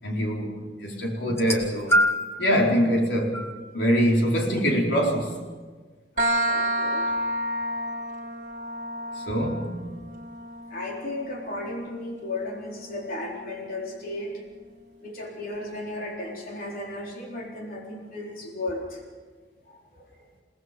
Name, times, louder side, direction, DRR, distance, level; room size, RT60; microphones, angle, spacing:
voice 1, 0.0-2.0 2.4-3.5 3.7-5.4 9.3-9.8, equal, 85° left, 4.5 m, -24 dB
sound 1, 1.3-2.4 3.3-3.5 4.6-4.7, equal, 15° left, 2.0 m, -24 dB
voice 2, 6.2-7.1 10.7-14.4 15.0-19.0 19.7-20.1, left 2 dB, 50° left, 4.0 m, -35 dB
sound 2, 6.2-13.6, right 1 dB, 45° right, 2.0 m, -31 dB
29.0 x 18.5 x 5.3 m
head